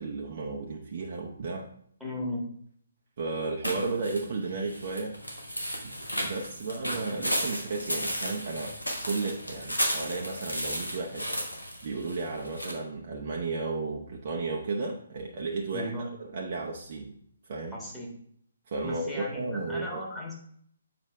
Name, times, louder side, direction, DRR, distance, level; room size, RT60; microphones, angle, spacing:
voice 1, 0.0-1.7 3.2-5.2 5.8-6.0 6.2-8.7 9.0-11.3 11.8-17.2 17.5-17.8 18.7-20.0, right 3 dB, 40° right, 0 dB, 0.6 m, -33 dB
voice 2, 2.0-2.4 15.7-16.1 17.7-18.1 18.8-20.4, left 1 dB, ahead, -4 dB, 1.5 m, -36 dB
sound 1, 3.6-12.7, equal, 85° left, 1.4 m, -34 dB
7.2 x 4.9 x 3.4 m, 0.65 s
figure-of-eight pair, 135°, 0 cm